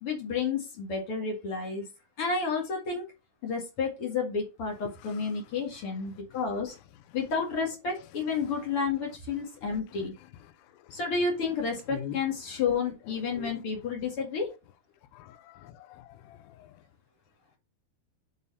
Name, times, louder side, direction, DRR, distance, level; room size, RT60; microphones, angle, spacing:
voice 1, 0.0-1.8 2.2-3.0 3.4-6.7 7.1-10.1 10.9-14.5, left 5 dB, 45° left, 2.2 m, -31 dB
voice 2, 15.1-16.7, left 9 dB, 85° left, 2.6 m, -43 dB
5.6 x 4.7 x 5.4 m
omnidirectional pair, 4.7 m